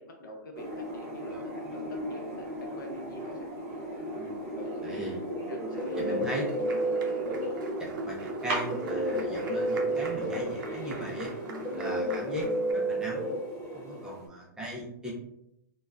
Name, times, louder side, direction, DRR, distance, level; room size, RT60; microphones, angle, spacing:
voice 1, 0.0-3.5 4.6-6.5 11.7-12.0 13.9-14.2, equal, 75° left, 2 dB, 0.7 m, -43 dB
sound 1, 0.5-14.3, right 1 dB, 40° right, 0.7 m, -37 dB
voice 2, 4.8-5.2 6.0-6.4 7.8-11.3 11.7-13.3 13.7-15.1, equal, 5° right, -5 dB, 0.3 m, -38 dB
Guitar, 5.4-7.9 8.7-14.1, right 1 dB, 35° left, 0.8 m, -32 dB
Applause, 5.8-12.7, right 4 dB, 85° right, 0.5 m, -48 dB
3.5 x 2.1 x 2.2 m, 0.81 s
hypercardioid pair, 160°, 11 cm